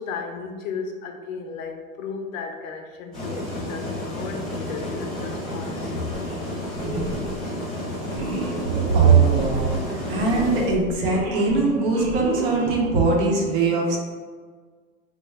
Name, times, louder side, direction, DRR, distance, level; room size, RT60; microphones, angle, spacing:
voice 1, 0.0-6.1, left 5 dB, 65° left, 4 dB, 0.6 m, -35 dB
sound 1, 3.1-10.7, left 1 dB, ahead, 0.4 m, -31 dB
sound 2, 6.1-6.5 6.7-7.4 8.1-13.1, right 2 dB, 85° right, 0.9 m, -32 dB
voice 2, 8.9-14.0, right 4 dB, 40° right, 0 dB, 0.6 m, -20 dB
3.2 x 2.0 x 3.3 m, 1.6 s
hypercardioid pair, 140°, 43 cm